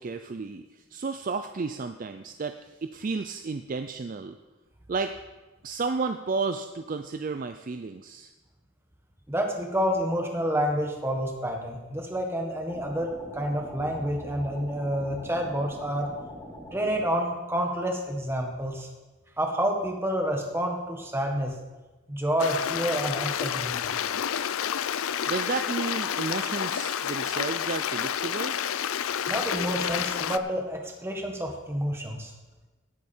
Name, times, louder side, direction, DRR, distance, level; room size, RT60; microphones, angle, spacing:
voice 1, 0.0-4.4 4.9-5.1 5.6-8.3 25.3-28.6, right 4 dB, 35° right, 8 dB, 0.4 m, -32 dB
voice 2, 9.3-16.1 16.7-18.9 19.4-21.5 22.1-23.9 29.3-32.3, equal, 10° right, 2 dB, 1.4 m, -29 dB
sound 1, 12.7-17.1, equal, 15° left, 2.3 m, -43 dB
Stream, 22.4-30.4, left 9 dB, 70° left, 0.5 m, -29 dB
16.5 x 8.3 x 4.4 m, 1.2 s
head